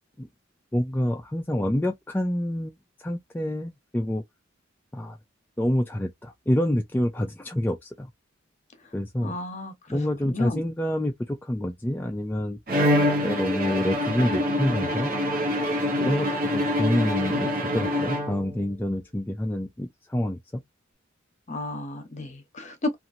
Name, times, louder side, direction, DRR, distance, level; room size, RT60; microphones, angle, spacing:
voice 1, 0.7-2.7 3.0-4.2 4.9-5.2 5.6-8.1 8.9-9.4 9.9-12.6 13.2-15.1 16.0-20.6, left 1 dB, 10° left, 0.3 m, -27 dB
voice 2, 9.2-10.6 21.5-23.0, left 2 dB, 35° left, 0.9 m, -32 dB
Bowed string instrument, 12.7-18.7, left 1 dB, 45° right, 1.0 m, -25 dB
2.9 x 2.5 x 2.6 m
head